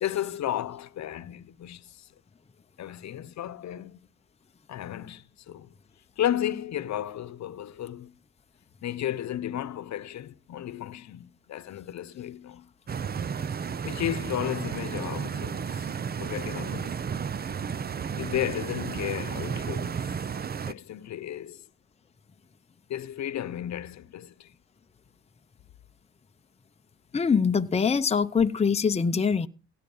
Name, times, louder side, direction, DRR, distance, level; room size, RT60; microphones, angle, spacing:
voice 1, 0.0-2.1 2.8-4.0 4.7-5.7 6.2-8.1 8.8-12.7 13.8-15.9 16.2-17.2 18.2-20.1 20.7-21.6 22.9-24.5, left 11 dB, 65° left, 1.0 m, -33 dB
Stream, 12.9-20.7, right 6 dB, 30° right, 0.6 m, -33 dB
voice 2, 27.1-29.5, left 5 dB, 20° left, 0.7 m, -23 dB
17.5 x 8.7 x 5.5 m
cardioid pair, 90°, 30 cm